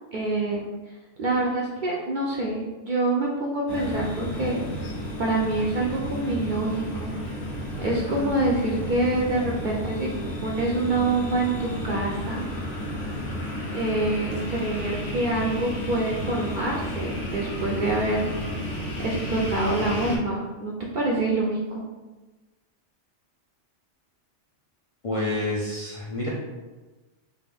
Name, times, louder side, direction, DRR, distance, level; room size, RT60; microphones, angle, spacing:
voice 1, 0.1-0.6 1.2-4.6 5.2-7.1 7.8-10.1 10.4-12.5 13.7-18.3 19.0-21.8, right 2 dB, 60° right, -3 dB, 0.5 m, -26 dB
sound 1, 3.7-20.2, left 1 dB, 80° left, 1.2 m, -32 dB
voice 2, 25.0-26.3, left 2 dB, 45° left, -5 dB, 0.4 m, -28 dB
3.5 x 2.5 x 3.3 m, 1.2 s
omnidirectional pair, 1.2 m